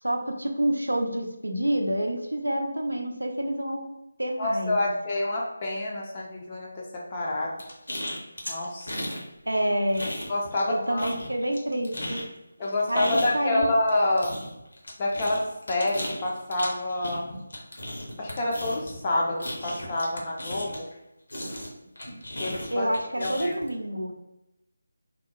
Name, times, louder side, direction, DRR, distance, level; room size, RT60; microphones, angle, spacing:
voice 1, 0.0-3.9 4.2-4.9 9.5-10.1 10.7-12.3 12.9-13.7 22.7-24.1, right 1 dB, 80° right, 4 dB, 0.4 m, -28 dB
voice 2, 4.4-6.8 7.1-7.5 8.5-9.0 10.3-11.1 12.6-14.3 15.0-17.3 18.2-20.9 22.4-22.9 23.2-23.6, left 2 dB, 25° left, -3 dB, 0.4 m, -27 dB
sound 1, 7.6-9.2 9.5-10.7 11.0-21.0 21.3-23.7, left 1 dB, 65° left, 0.7 m, -36 dB
2.7 x 2.0 x 2.3 m, 0.91 s
figure-of-eight pair, 155°, 0 cm